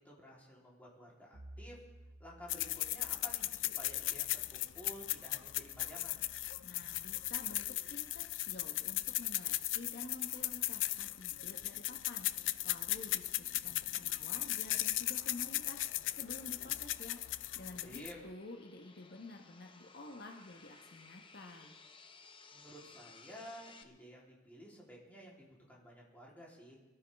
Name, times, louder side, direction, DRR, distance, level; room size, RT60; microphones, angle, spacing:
voice 1, 0.0-1.8 2.2-6.2 17.8-18.2 22.5-26.8, equal, 10° left, -5 dB, 3.4 m, -53 dB
Bowed string instrument, 1.3-5.5, right 1 dB, 55° right, 0.8 m, -57 dB
sound 1, 2.5-18.3, left 15 dB, 75° left, 0.4 m, -37 dB
voice 2, 6.6-21.7, left 2 dB, 55° left, 2 dB, 1.2 m, -51 dB
sound 2, 13.2-23.8, left 4 dB, 25° left, 0.9 m, -61 dB
23.0 x 12.5 x 3.5 m, 1.1 s
head